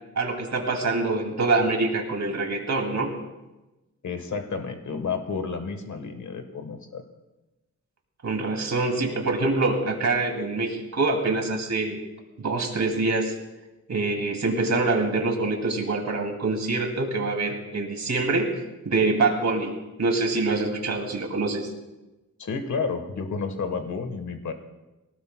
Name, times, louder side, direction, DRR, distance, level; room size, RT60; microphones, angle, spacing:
voice 1, 0.2-3.1 8.2-12.0 12.4-13.3 13.9-18.6 18.8-19.7 20.0-21.7, right 3 dB, 55° right, 1 dB, 2.6 m, -25 dB
voice 2, 4.0-7.0 22.4-24.5, left 5 dB, 60° left, 6 dB, 1.4 m, -31 dB
23.5 x 18.0 x 2.3 m, 1.0 s
wide cardioid pair, 155°, 32 cm